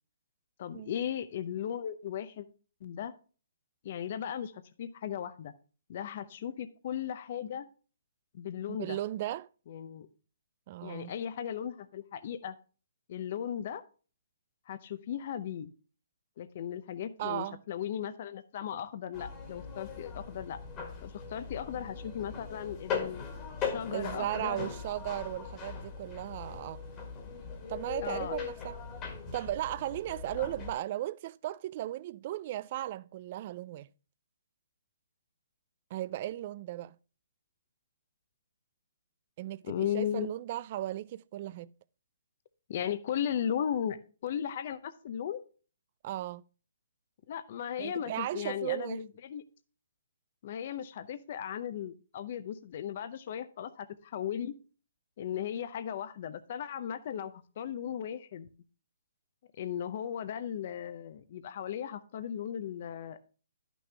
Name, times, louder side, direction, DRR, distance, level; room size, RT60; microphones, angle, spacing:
voice 1, 0.6-2.5 2.8-3.1 3.8-5.5 5.9-7.7 8.3-9.0 9.7-10.1 10.8-12.5 13.1-13.8 14.7-15.7 16.4-20.6 21.0-23.2 23.6-24.7 28.0-28.4 39.7-40.3 42.7-45.4 47.3-49.4 50.4-54.5 55.2-58.5 59.5-63.3, left 9 dB, 45° left, 0.6 m, -36 dB
voice 2, 8.7-9.5 10.7-11.1 17.2-17.6 23.9-26.8 27.7-28.8 29.3-33.9 35.9-37.0 39.4-41.7 46.0-46.4 47.8-49.0, right 14 dB, 40° right, 0.3 m, -36 dB
sound 1, 19.1-30.7, left 6 dB, 20° left, 1.7 m, -40 dB
10.5 x 6.1 x 3.4 m
hypercardioid pair, 155°, 0 cm